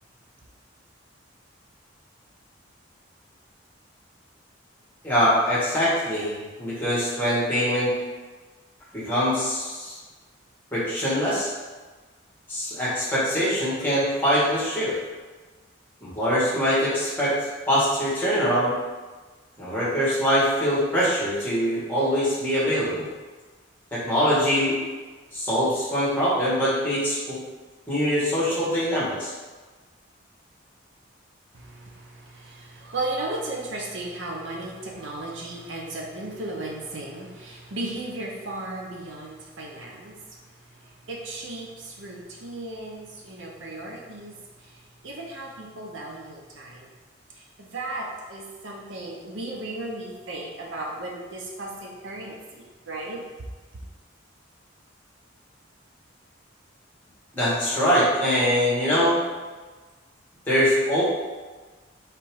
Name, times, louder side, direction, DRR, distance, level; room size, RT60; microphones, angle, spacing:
voice 1, 5.0-7.9 8.9-9.9 10.7-11.5 12.5-14.9 16.0-18.7 19.6-23.1 23.9-24.8 25.3-27.4 27.9-29.3 57.3-59.2 60.5-61.0, equal, 10° left, -9 dB, 1.4 m, -23 dB
voice 2, 31.5-46.9 47.3-53.2 53.7-53.8, right 2 dB, 75° right, -1 dB, 0.7 m, -36 dB
3.3 x 2.9 x 4.6 m, 1.3 s
head